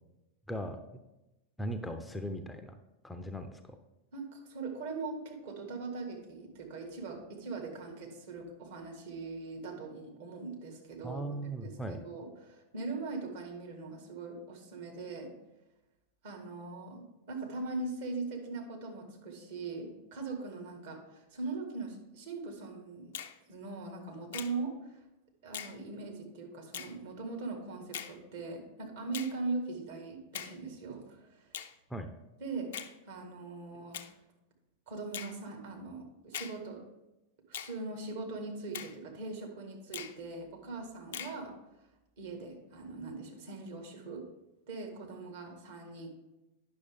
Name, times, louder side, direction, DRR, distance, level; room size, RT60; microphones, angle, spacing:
voice 1, 0.5-0.8 1.6-2.7 3.0-3.8 11.0-12.0 31.9-32.1, right 1 dB, 5° left, 6 dB, 0.5 m, -38 dB
voice 2, 4.1-15.3 16.2-23.1 23.5-25.0 25.4-31.5 32.4-32.7 33.1-34.1 34.9-36.8 37.5-41.5 42.2-44.2 44.7-46.1, right 3 dB, 55° right, 1 dB, 1.8 m, -41 dB
Finger snapping, 23.1-23.4 24.3-24.6 25.5-25.8 26.7-26.9 27.9-28.2 29.1-29.4 30.3-30.6 31.5-31.7 32.7-32.9 33.9-34.1 35.1-35.4 36.3-36.6 37.5-37.8 38.7-39.0 39.9-40.2 41.1-41.4, left 9 dB, 60° left, 0.5 m, -41 dB
9.7 x 6.3 x 3.5 m, 0.98 s
figure-of-eight pair, 90°, 0 cm